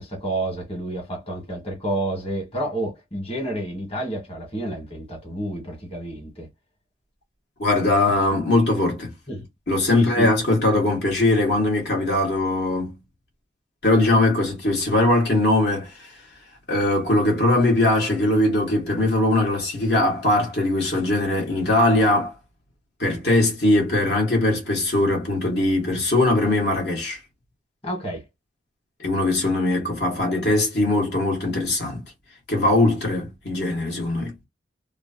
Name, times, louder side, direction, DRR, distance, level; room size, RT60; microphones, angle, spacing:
voice 1, 0.0-6.5 9.3-9.4 9.8-10.3 27.8-28.2, right 1 dB, 35° left, 1.5 m, -29 dB
voice 2, 7.6-9.1 9.7-13.0 13.8-16.1 16.7-22.3 23.0-27.2 29.0-32.0 32.5-34.3, left 2 dB, 60° left, 1.4 m, -21 dB
3.0 x 2.4 x 2.7 m
head